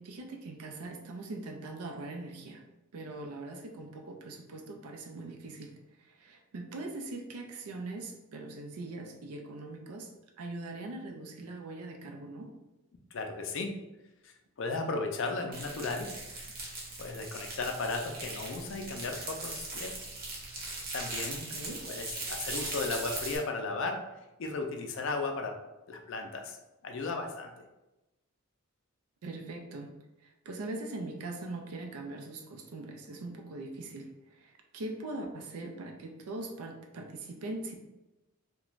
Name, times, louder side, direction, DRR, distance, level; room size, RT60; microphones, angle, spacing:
voice 1, 0.0-2.6 2.9-5.7 6.0-10.1 10.4-12.5 21.5-21.8 29.2-29.9 30.4-34.1 34.4-37.8, right 2 dB, 85° right, 3 dB, 0.5 m, -41 dB
voice 2, 13.1-13.7 14.2-14.3 14.6-16.1 17.0-19.9 20.9-21.5 21.8-24.1 24.4-25.6 25.9-26.6 26.8-27.5, left 3 dB, 55° left, 3 dB, 0.4 m, -35 dB
sound 1, 15.5-23.4, right 2 dB, 45° right, 0.6 m, -39 dB
2.4 x 2.2 x 3.0 m, 1.0 s
head